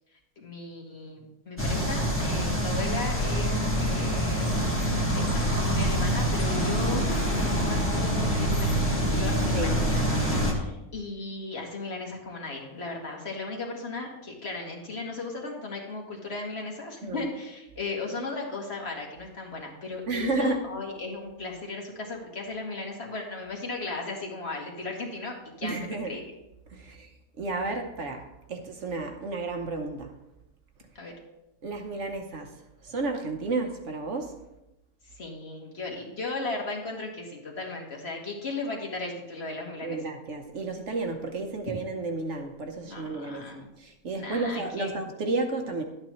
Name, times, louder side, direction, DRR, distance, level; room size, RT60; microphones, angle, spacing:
voice 1, 0.4-4.5 5.1-10.0 10.4-25.8 26.1-26.2 31.0-31.2 35.2-40.0 42.8-43.7 44.2-44.9, left 3 dB, 45° left, 0 dB, 1.9 m, -36 dB
sound 1, 1.6-10.5, equal, 10° left, 1.4 m, -26 dB
voice 2, 20.1-20.6 25.6-26.1 26.7-27.1 27.4-30.1 31.0-31.1 31.6-32.5 32.8-34.3 39.8-45.8, right 3 dB, 55° right, 4 dB, 1.1 m, -32 dB
12.0 x 8.7 x 3.1 m, 0.93 s
omnidirectional pair, 1.5 m